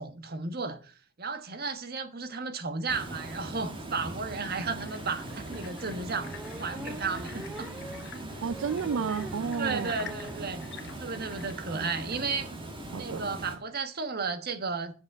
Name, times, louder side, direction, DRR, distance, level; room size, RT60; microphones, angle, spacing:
voice 1, 0.0-7.7 9.6-10.6 11.0-12.5 12.9-14.9, right 4 dB, 50° right, 1.4 m, -34 dB
Water, 2.9-13.6, right 1 dB, 25° right, 2.1 m, -40 dB
sound 1, 4.4-12.4, left 7 dB, 60° left, 1.2 m, -50 dB
sound 2, 6.2-10.5 10.8-10.9 11.2-11.3 11.5-11.7, right 1 dB, 10° right, 0.6 m, -44 dB
voice 2, 8.4-10.1 11.7-11.8 12.9-13.3, right 6 dB, 85° right, 0.4 m, -32 dB
8.1 x 6.8 x 7.7 m
head